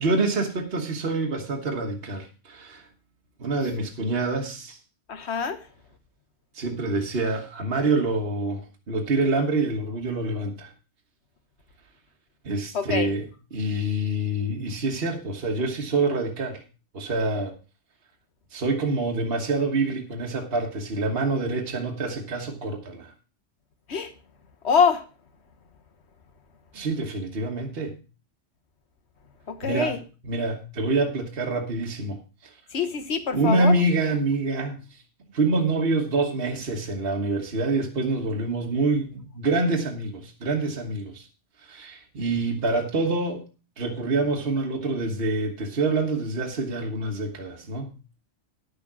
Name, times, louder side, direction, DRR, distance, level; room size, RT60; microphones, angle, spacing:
voice 1, 0.0-2.9 3.4-4.8 6.5-10.7 12.4-13.3 13.5-16.6 16.9-17.5 18.5-23.1 26.7-28.0 29.6-29.9 30.2-32.2 33.3-34.8 35.3-41.3 41.7-43.4 43.8-47.9, right 2 dB, 50° right, 1.6 m, -26 dB
voice 2, 5.1-5.6 12.7-13.1 23.9-24.1 24.6-25.0 29.5-30.0 32.7-33.8, left 6 dB, 65° left, 1.5 m, -24 dB
10.5 x 6.8 x 6.0 m
omnidirectional pair, 1.3 m